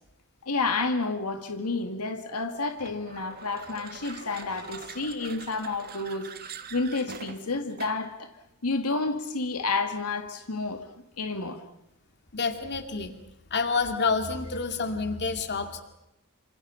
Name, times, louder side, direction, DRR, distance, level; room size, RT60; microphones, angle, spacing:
voice 1, 0.4-8.3 8.6-10.9 11.2-11.6, left 3 dB, 85° left, 6 dB, 1.9 m, -30 dB
sound 1, 2.8-8.2, right 5 dB, 45° right, 1.8 m, -44 dB
voice 2, 12.3-13.2 13.5-15.8, left 4 dB, 50° left, 6 dB, 2.6 m, -28 dB
27.5 x 27.0 x 5.8 m, 0.86 s
head